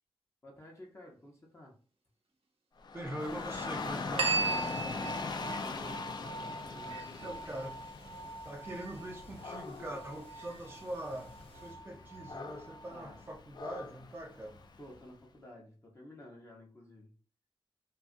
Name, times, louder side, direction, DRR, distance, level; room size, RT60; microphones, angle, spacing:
voice 1, 0.4-1.8 4.7-6.1 6.7-7.3 12.9-13.2 14.8-17.1, left 1 dB, 30° left, 0.8 m, -52 dB
Dog / Rain, 2.8-15.0, left 4 dB, 45° left, 0.4 m, -42 dB
voice 2, 2.9-4.4 7.2-7.8 8.4-14.6, right 1 dB, 25° right, 0.5 m, -42 dB
sound 1, 3.2-11.7, left 1 dB, 70° left, 0.9 m, -58 dB
sound 2, 4.2-13.2, right 4 dB, 75° right, 0.8 m, -39 dB
2.7 x 2.3 x 2.5 m
wide cardioid pair, 85°, 10 cm